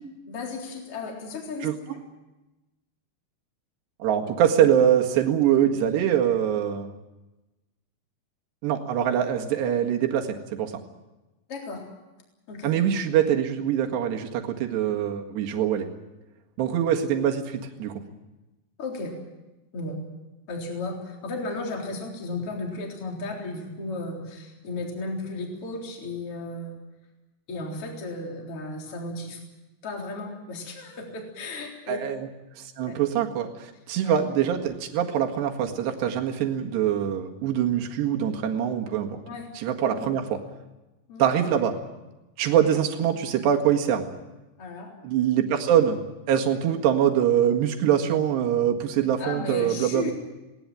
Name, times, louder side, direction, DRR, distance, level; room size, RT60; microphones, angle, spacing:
voice 1, 0.3-1.7 11.5-11.9 12.5-12.7 18.8-19.2 19.7-20.0 20.5-26.8 27.5-29.4 29.8-32.0 32.9-33.0 34.0-34.2 39.3-39.5 39.9-40.1 41.1-41.2 44.6-44.9 49.2-50.1, left 3 dB, 30° left, 0 dB, 4.2 m, -34 dB
voice 2, 4.0-6.9 8.6-10.7 12.6-15.9 16.6-18.0 31.9-32.3 32.6-39.2 39.5-40.4 41.2-41.8 42.4-44.1 45.0-46.0 46.3-50.1, right 9 dB, 70° right, 3 dB, 3.8 m, -24 dB
20.5 x 18.5 x 9.0 m, 1.0 s
omnidirectional pair, 5.5 m